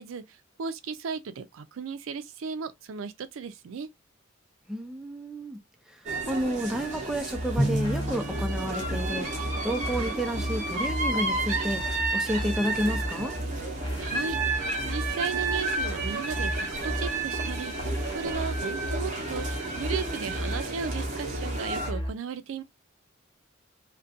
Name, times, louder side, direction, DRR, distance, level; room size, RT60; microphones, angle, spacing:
voice 1, 0.0-3.9 14.0-14.4 14.9-22.6, right 5 dB, 80° right, 0.4 m, -36 dB
voice 2, 4.7-5.6 5.9-13.4, equal, 5° right, 0.4 m, -31 dB
sound 1, 6.1-21.9, right 3 dB, 40° right, 0.7 m, -32 dB
sound 2, 7.3-22.1, equal, 20° left, 0.7 m, -35 dB
Drum, 7.6-9.7, right 1 dB, 60° left, 0.8 m, -31 dB
2.4 x 2.2 x 2.4 m
head